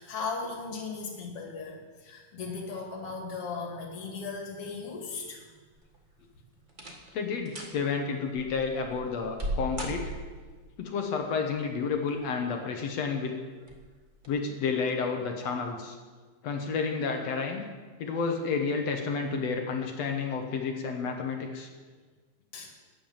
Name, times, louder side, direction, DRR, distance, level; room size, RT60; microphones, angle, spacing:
voice 1, 0.0-5.4 22.5-22.7, left 4 dB, 45° left, 0 dB, 2.9 m, -37 dB
sound 1, 5.7-6.2 6.7-7.1 7.4-7.8 8.3-10.5 11.7-12.3 12.8-12.9 13.6-13.8 14.2-14.3, right 1 dB, 50° right, 0.5 m, -37 dB
voice 2, 7.1-10.1 10.8-13.4 14.3-16.0 16.4-17.6 18.0-21.7, left 5 dB, 60° left, 3 dB, 1.9 m, -30 dB
13.5 x 9.2 x 7.3 m, 1.4 s
omnidirectional pair, 3.9 m